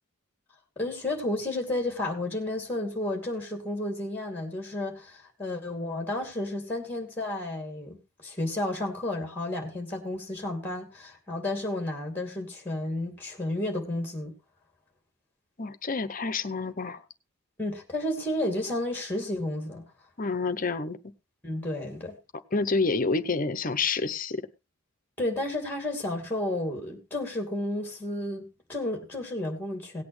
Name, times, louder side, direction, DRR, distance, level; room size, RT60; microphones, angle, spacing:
voice 1, 0.8-14.3 17.6-19.8 21.4-22.1 25.2-30.0, left 1 dB, 10° left, 2.6 m, -32 dB
voice 2, 15.6-17.0 20.2-21.0 22.5-24.4, left 4 dB, 40° left, 0.8 m, -28 dB
17.5 x 8.5 x 3.2 m
head